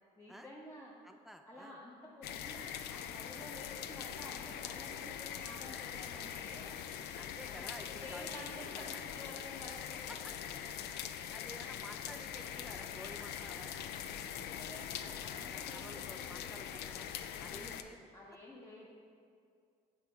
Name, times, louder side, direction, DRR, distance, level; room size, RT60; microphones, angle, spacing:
voice 1, 0.2-0.9 1.5-7.3 7.6-10.2 14.4-16.6 17.4-17.9 18.1-18.9, left 1 dB, 15° left, -5 dB, 1.0 m, -51 dB
voice 2, 1.0-1.8 7.2-8.3 10.1-10.3 11.1-13.9 14.4-14.5 15.3-17.1 17.4-18.1, equal, ahead, 6 dB, 0.4 m, -52 dB
sound 1, 2.2-17.8, left 9 dB, 75° left, 0.4 m, -43 dB
8.2 x 4.1 x 4.5 m, 2.3 s
cardioid pair, 110°, 17 cm